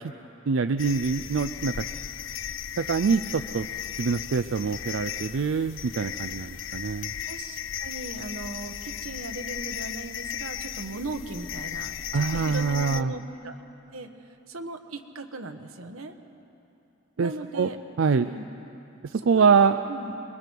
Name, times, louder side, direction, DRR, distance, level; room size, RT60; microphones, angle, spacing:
voice 1, 0.5-1.8 2.8-3.7 4.0-7.1 12.1-13.1 17.2-17.7 18.0-18.3 19.0-19.8, right 5 dB, 65° right, 10 dB, 0.4 m, -24 dB
sound 1, 0.8-13.0, left 9 dB, 65° left, 0.5 m, -36 dB
voice 2, 7.3-11.9 12.3-13.6 13.9-14.1 14.5-16.1 17.2-17.8 18.1-18.5 19.3-19.6 19.9-20.1, right 2 dB, 90° right, 5 dB, 1.4 m, -38 dB
28.0 x 21.5 x 4.7 m, 2.9 s
head